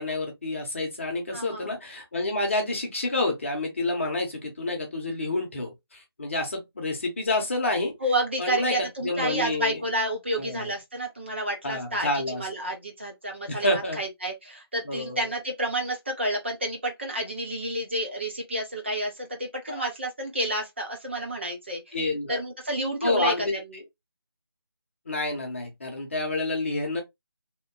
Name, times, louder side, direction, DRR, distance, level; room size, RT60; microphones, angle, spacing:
voice 1, 0.0-7.9 8.4-9.8 10.4-10.7 11.6-12.5 13.5-14.0 14.8-15.3 19.7-19.8 21.9-22.4 23.0-23.8 25.1-27.0, left 2 dB, 30° left, 0.9 m, -29 dB
voice 2, 1.3-1.7 8.0-22.0 22.3-23.8, right 1 dB, 30° right, 0.7 m, -30 dB
2.9 x 2.1 x 3.5 m
figure-of-eight pair, 160°, 13 cm